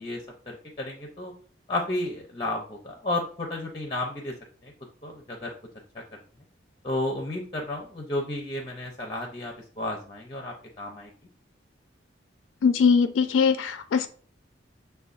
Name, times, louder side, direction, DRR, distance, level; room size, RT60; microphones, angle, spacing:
voice 1, 0.0-1.3 1.7-4.3 4.6-4.7 5.0-5.5 5.9-6.2 6.8-11.1, left 2 dB, 25° left, 1 dB, 0.5 m, -32 dB
voice 2, 12.6-14.1, left 5 dB, 85° left, 10 dB, 0.3 m, -21 dB
6.6 x 2.2 x 2.4 m, 0.43 s
head